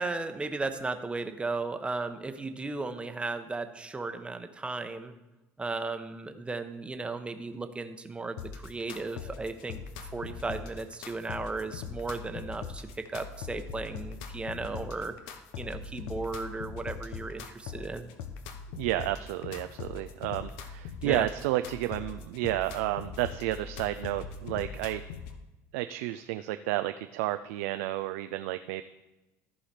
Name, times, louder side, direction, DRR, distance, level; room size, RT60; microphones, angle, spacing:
voice 1, 0.0-5.1 5.6-18.1 21.0-21.3, right 3 dB, 15° right, 8 dB, 0.9 m, -35 dB
sound 1, 8.4-25.4, left 6 dB, 80° left, 0.8 m, -41 dB
voice 2, 18.7-25.0 25.7-28.8, right 15 dB, 85° right, 10 dB, 0.3 m, -31 dB
14.5 x 4.9 x 4.3 m, 1.0 s
supercardioid pair, 95°, 7 cm